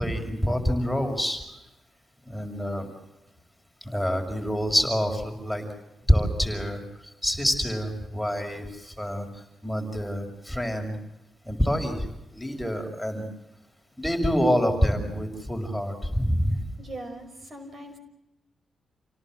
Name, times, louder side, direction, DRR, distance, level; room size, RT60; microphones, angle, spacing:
voice 1, 0.0-1.4 2.2-2.9 3.8-5.7 6.1-11.0 11.4-12.1 12.3-13.2 14.0-16.6, equal, ahead, 3 dB, 6.1 m, -26 dB
voice 2, 16.8-18.0, right 1 dB, 45° right, 6 dB, 5.7 m, -40 dB
29.0 x 18.0 x 7.6 m, 0.88 s
cardioid pair, 70°, 0 cm